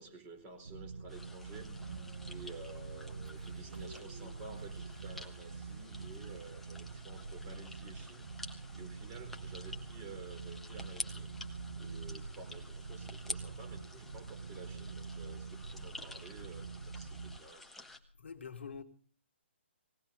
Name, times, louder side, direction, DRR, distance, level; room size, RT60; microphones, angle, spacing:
voice 1, 0.0-1.9 2.3-11.3 11.8-17.9, right 3 dB, 25° right, 4.5 m, -52 dB
sound 1, 0.6-17.4, right 4 dB, 65° right, 1.0 m, -45 dB
sound 2, 1.1-18.0, left 2 dB, 5° left, 1.3 m, -50 dB
Train, 1.5-6.8, right 4 dB, 45° right, 2.6 m, -57 dB
voice 2, 18.2-18.8, left 6 dB, 65° left, 1.8 m, -45 dB
20.0 x 17.5 x 3.9 m
figure-of-eight pair, 135°, 7 cm